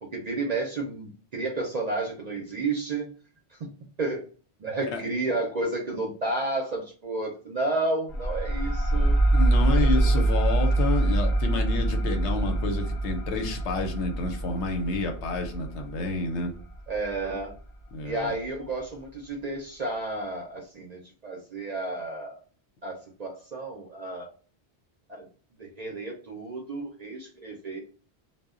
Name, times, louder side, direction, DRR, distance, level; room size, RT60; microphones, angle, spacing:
voice 1, 0.0-3.1 3.5-3.7 4.0-4.3 4.6-9.2 9.8-10.1 16.9-17.5 18.0-22.4 22.8-24.3 25.1-25.3 25.6-27.8, right 2 dB, 55° right, 1 dB, 0.5 m, -31 dB
sound 1, 8.1-17.3, right 2 dB, 55° left, 0.7 m, -25 dB
voice 2, 9.3-16.5 17.9-18.3, left 3 dB, 85° left, 4 dB, 0.9 m, -29 dB
2.1 x 2.0 x 3.5 m, 0.42 s
omnidirectional pair, 1.1 m